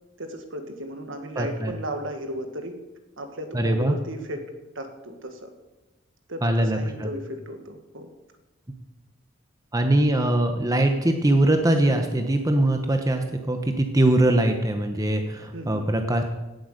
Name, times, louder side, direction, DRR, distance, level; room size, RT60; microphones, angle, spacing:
voice 1, 0.2-2.8 3.2-4.5 4.7-5.5 6.3-8.1 15.5-15.9, right 1 dB, 65° right, 7 dB, 1.7 m, -35 dB
voice 2, 1.4-1.7 3.5-4.0 6.4-7.1 9.7-16.2, right 1 dB, 15° right, 5 dB, 0.9 m, -22 dB
16.5 x 8.0 x 6.6 m, 1.1 s
head